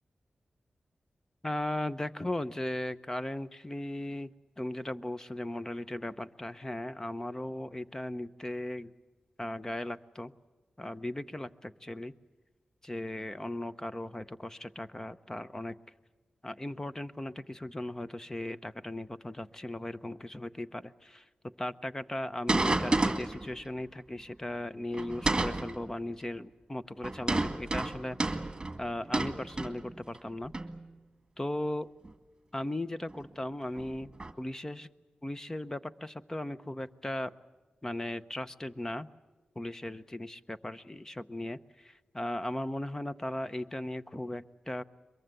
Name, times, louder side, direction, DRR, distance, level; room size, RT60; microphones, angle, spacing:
voice 1, 1.4-4.3 4.6-8.9 9.4-10.3 10.8-12.1 12.8-15.7 16.4-21.2 21.6-28.4 28.8-30.5 31.4-31.9 32.5-34.1 34.4-34.9 35.2-37.3 37.8-39.1 39.6-44.8, left 1 dB, 15° left, 13 dB, 0.8 m, -37 dB
sound 1, 22.5-23.5 24.9-25.8 27.0-30.2 30.5-30.8 32.0-32.1 33.1-33.2 33.8-34.3, right 2 dB, 25° right, 1.9 m, -30 dB
23.0 x 22.5 x 8.2 m, 1.3 s
wide cardioid pair, 90°, 3 cm